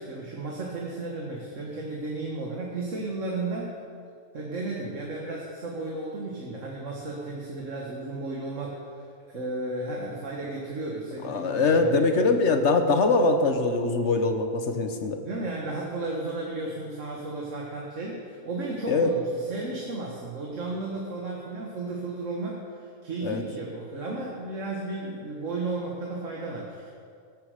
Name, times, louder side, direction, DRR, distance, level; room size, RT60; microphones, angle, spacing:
voice 1, 0.0-3.7 4.3-8.8 9.3-12.4 15.2-26.9, right 2 dB, 70° right, -2 dB, 1.9 m, -34 dB
voice 2, 11.2-15.2 18.9-19.1 23.2-23.4, left 3 dB, 60° left, 6 dB, 1.3 m, -23 dB
14.0 x 9.7 x 6.6 m, 2.3 s
omnidirectional pair, 1.3 m